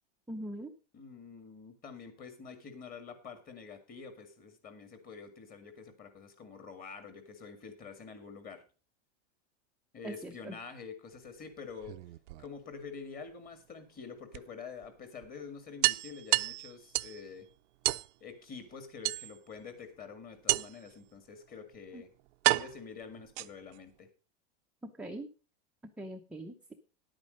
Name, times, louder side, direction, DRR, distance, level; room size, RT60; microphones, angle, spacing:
voice 1, 0.3-0.7 10.0-10.6 21.9-22.0 24.8-25.3 26.0-26.7, right 1 dB, 5° right, 2 dB, 0.6 m, -42 dB
voice 2, 0.9-8.6 9.9-12.0 12.4-17.5 18.2-22.1 22.5-24.1, left 5 dB, 25° left, 9 dB, 2.1 m, -47 dB
sound 1, 11.7-12.9 14.3-14.4 14.8-14.9 15.2-15.3 15.8-17.2 17.8-18.1 19.0-19.6 20.5-20.9 21.7-21.8 22.4-23.8, right 19 dB, 70° right, 0.6 m, -30 dB
10.5 x 8.9 x 5.2 m, 0.34 s
supercardioid pair, 145°, 37 cm